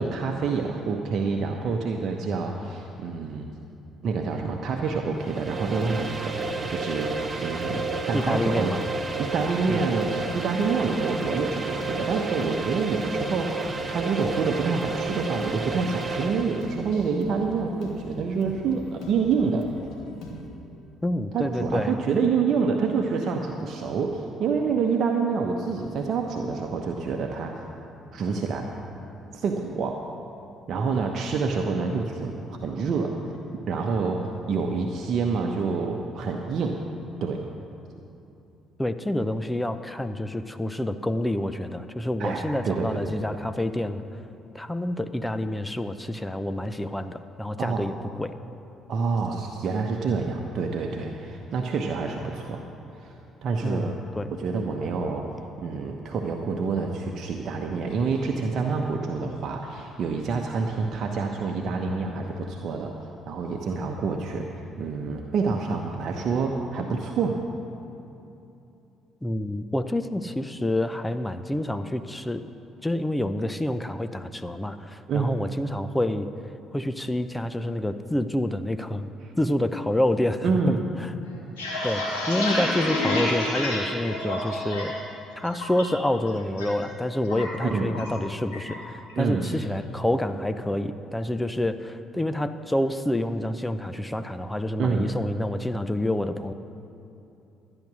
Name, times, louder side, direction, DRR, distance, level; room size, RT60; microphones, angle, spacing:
voice 1, 0.0-3.5 4.0-8.8 9.2-19.7 21.3-27.6 28.1-28.7 29.3-30.1 30.7-32.3 32.6-33.1 33.7-36.8 37.2-37.5 42.2-43.4 47.6-47.8 48.9-52.6 52.9-54.0 54.3-55.3 55.6-63.0 63.3-67.4 75.1-75.3 79.2-79.3 80.4-80.8 87.7-87.9 89.1-89.5 94.8-95.1, right 5 dB, 55° right, 2 dB, 1.0 m, -27 dB
sound 1, 5.2-16.8, right 3 dB, 30° right, 1.4 m, -31 dB
sound 2, 5.8-20.5, left 1 dB, 65° left, 2.5 m, -42 dB
voice 2, 8.1-8.8 9.7-9.8 21.0-22.0 38.8-44.0 44.5-48.3 53.6-54.3 69.2-72.4 72.8-76.3 76.7-79.1 79.4-80.8 81.0-81.1 81.8-84.9 85.4-96.5, left 1 dB, 10° left, 10 dB, 0.7 m, -28 dB
sound 3, 81.3-85.0 85.3-85.8 86.2-86.7 86.9-88.2 88.5-88.8 89.1-89.6, left 1 dB, 85° left, 3.1 m, -28 dB
13.5 x 9.8 x 6.3 m, 2.8 s
hypercardioid pair, 50°, 0 cm